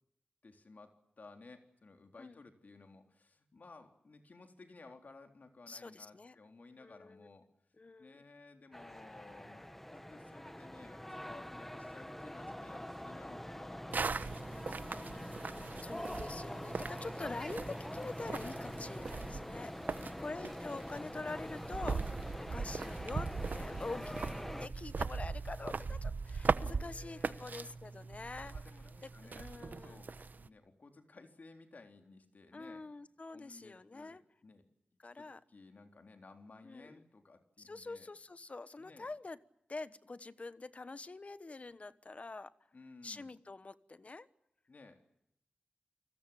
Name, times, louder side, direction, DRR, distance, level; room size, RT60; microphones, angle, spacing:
voice 1, 0.4-7.5 8.0-15.5 19.8-20.6 26.6-27.8 28.4-32.9 33.3-34.7 35.2-38.1 38.8-39.1 42.7-43.3 44.7-45.1, left 3 dB, 60° left, 5 dB, 3.8 m, -57 dB
voice 2, 5.7-6.3 6.8-7.3 7.8-8.2 15.8-19.7 20.2-24.2 24.5-28.5 29.0-29.1 29.4-30.0 32.5-34.2 35.0-35.4 36.6-37.0 37.6-39.4 39.7-42.5 43.0-44.3, left 3 dB, 45° left, 15 dB, 1.2 m, -45 dB
sound 1, 8.7-24.7, equal, 5° left, 1.1 m, -44 dB
sound 2, 13.9-30.5, right 4 dB, 70° right, 1.0 m, -40 dB
29.5 x 20.5 x 8.7 m, 0.78 s
wide cardioid pair, 85°, 3 cm